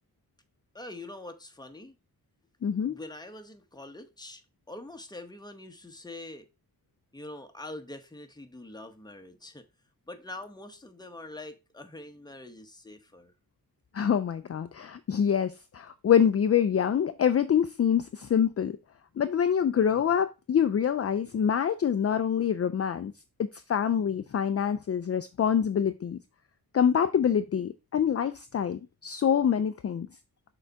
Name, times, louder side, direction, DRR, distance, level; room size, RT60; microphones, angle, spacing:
voice 1, 0.7-2.0 2.8-4.4 4.7-6.5 7.1-9.7 10.1-13.3, left 2 dB, 10° left, 0.9 m, -44 dB
voice 2, 2.6-3.0 13.9-18.8 19.2-23.1 23.4-26.2 26.7-30.1, left 8 dB, 40° left, 0.4 m, -26 dB
6.5 x 3.9 x 4.6 m
wide cardioid pair, 135°, 38 cm